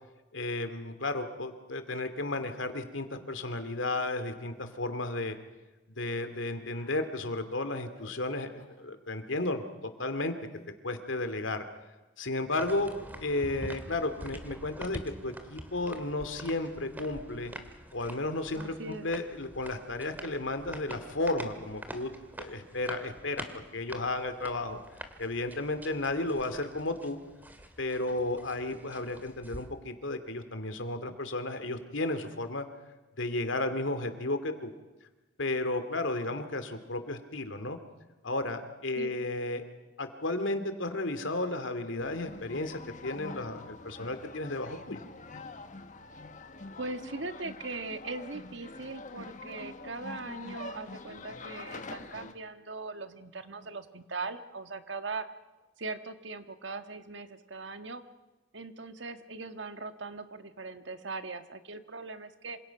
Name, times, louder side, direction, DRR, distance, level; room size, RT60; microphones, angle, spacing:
voice 1, 0.3-5.4 6.0-9.6 10.0-10.3 10.8-11.6 12.2-12.9 13.2-17.5 17.9-22.1 22.4-23.4 23.7-24.8 25.2-27.2 27.8-32.7 33.2-34.7 35.4-37.8 38.2-39.6 40.0-45.0, left 2 dB, 90° left, 9 dB, 2.5 m, -33 dB
sound 1, 4.5-4.7 5.1-5.3 6.1-6.3 6.7-7.0 8.0-8.2 8.6-8.8 10.5-10.7, left 1 dB, 20° left, 7.9 m, -59 dB
sound 2, 12.6-29.7, right 1 dB, 10° right, 2.1 m, -46 dB
voice 2, 18.6-19.1 39.0-39.1 46.8-55.3 55.8-58.0 58.5-62.6, right 3 dB, 70° right, 9 dB, 1.6 m, -40 dB
sound 3, 42.0-52.3, left 3 dB, 40° left, 1.5 m, -45 dB
27.0 x 26.5 x 5.9 m, 1.1 s
head